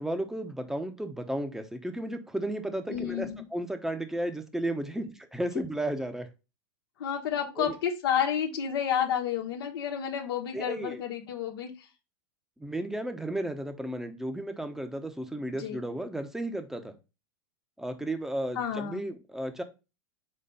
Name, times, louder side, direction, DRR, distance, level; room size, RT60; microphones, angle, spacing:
voice 1, 0.0-6.3 7.6-7.7 10.5-11.0 12.6-17.0 17.8-19.6, right 1 dB, 5° right, 7 dB, 1.0 m, -34 dB
voice 2, 2.9-3.4 7.0-11.9 15.6-15.8 18.5-19.0, left 8 dB, 75° left, 1 dB, 1.3 m, -30 dB
4.4 x 4.4 x 5.5 m, 0.29 s
hypercardioid pair, 110°, 12 cm